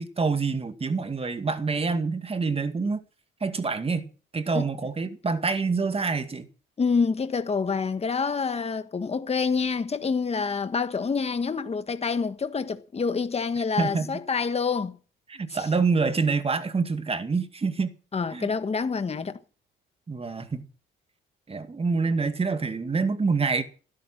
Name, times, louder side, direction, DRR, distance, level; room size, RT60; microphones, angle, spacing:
voice 1, 0.0-3.0 3.4-4.1 4.3-6.5 13.8-14.1 15.3-17.9 18.3-18.5 20.1-20.6 21.5-23.6, right 4 dB, 30° right, 2.1 m, -26 dB
voice 2, 6.8-15.0 15.5-15.6 18.1-19.4, left 5 dB, 30° left, 1.5 m, -27 dB
17.0 x 11.0 x 6.2 m
cardioid pair, 90°, 20 cm